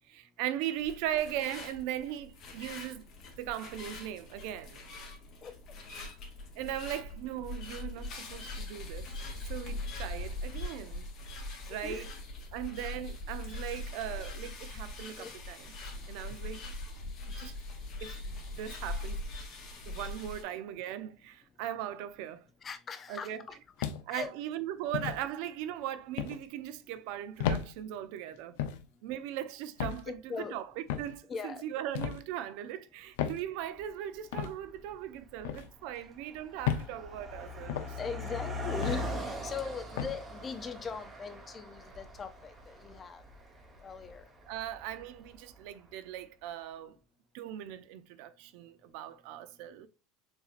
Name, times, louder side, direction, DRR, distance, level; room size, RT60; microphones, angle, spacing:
voice 1, 0.1-3.1 3.4-4.9 6.6-9.1 9.5-11.1 11.7-12.1 12.5-15.7 16.1-16.6 17.4-17.5 18.0-19.2 19.9-22.4 23.1-23.5 24.1-28.6 29.0-38.0 39.6-39.7 44.5-47.0 47.3-49.9, right 11 dB, 60° right, 0.5 m, -39 dB
sound 1, 0.8-20.4, left 2 dB, 35° left, 1.4 m, -42 dB
voice 2, 11.7-12.1 15.2-15.3 22.6-23.6 24.1-24.3 30.3-30.6 31.3-31.6 38.0-43.2 43.8-44.2, left 6 dB, 20° left, 0.5 m, -40 dB
sound 2, 23.8-24.3 24.9-25.2 26.2-26.4 27.4-27.7 28.6-28.8 29.8-30.0 30.9-31.1 31.9-32.2 33.2-33.4 34.3-34.5 35.4-35.7 36.6-36.9 37.7-37.9 38.8-39.1 40.0-40.2, left 8 dB, 75° left, 0.6 m, -33 dB
Car passing by, 33.8-33.9 34.7-34.9 35.2-45.6, left 1 dB, 10° right, 0.8 m, -41 dB
6.9 x 2.7 x 2.4 m
cardioid pair, 165°, 0 cm